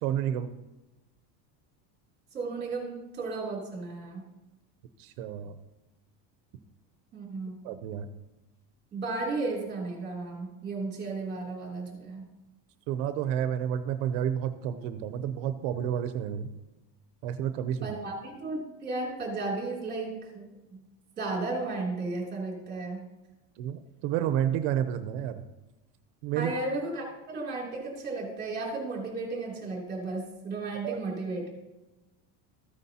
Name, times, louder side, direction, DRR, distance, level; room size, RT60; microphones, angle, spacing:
voice 1, 0.0-0.5 5.0-5.5 7.6-8.1 12.9-16.5 17.2-17.9 23.6-25.4 26.2-26.5 30.8-31.0, right 10 dB, 85° right, 10 dB, 0.8 m, -30 dB
voice 2, 2.3-4.2 7.1-7.6 8.9-12.2 17.8-20.8 21.2-23.0 26.3-31.5, right 3 dB, 20° right, -2 dB, 3.0 m, -34 dB
14.0 x 9.4 x 2.8 m, 1.0 s
cardioid pair, 170°, 45 cm